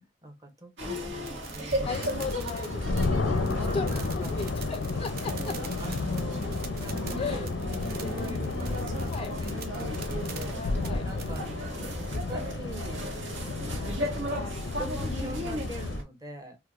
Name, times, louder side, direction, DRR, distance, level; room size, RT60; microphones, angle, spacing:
voice 1, 0.2-2.3 3.3-4.4 5.3-6.5 6.8-10.6 11.0-14.4 14.8-16.6, right 1 dB, 20° right, 0.8 m, -43 dB
sound 1, 0.8-16.0, equal, 70° right, 1.1 m, -36 dB
sound 2, 1.3-11.4, right 7 dB, 55° right, 0.6 m, -45 dB
sound 3, 1.8-16.0, left 3 dB, 90° left, 0.5 m, -32 dB
voice 2, 1.8-3.2 3.7-5.6 7.2-7.5 9.1-9.3 10.5-11.1 14.3-14.8, left 4 dB, 30° left, 0.3 m, -37 dB
4.5 x 2.1 x 2.3 m
head